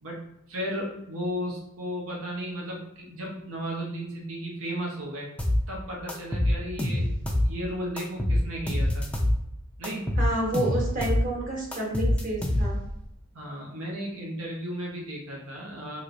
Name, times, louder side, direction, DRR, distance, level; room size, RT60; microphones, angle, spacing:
voice 1, 0.0-5.3 5.7-7.1 7.4-9.1 9.8-10.1 13.3-16.0, equal, 85° right, -2 dB, 0.8 m, -34 dB
sound 1, 5.4-5.6 6.1-7.5 8.0-9.4 9.8-11.3 11.7-12.9, left 1 dB, 5° left, 0.4 m, -25 dB
voice 2, 10.2-12.8, right 1 dB, 40° right, -3 dB, 1.0 m, -29 dB
3.0 x 3.0 x 2.5 m, 0.81 s
head